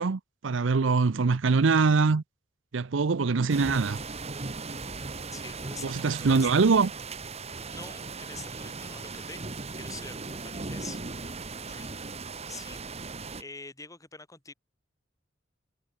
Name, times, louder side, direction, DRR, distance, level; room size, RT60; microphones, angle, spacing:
voice 1, 0.0-2.2 2.7-4.0 5.8-6.9, right 4 dB, 75° right, 0.6 m, -23 dB
sound 1, 3.5-13.4, right 3 dB, 35° right, 1.5 m, -38 dB
voice 2, 5.3-6.9 7.7-11.0 11.7-12.0 12.5-12.8 13.1-14.5, left 3 dB, 15° left, 2.9 m, -45 dB
head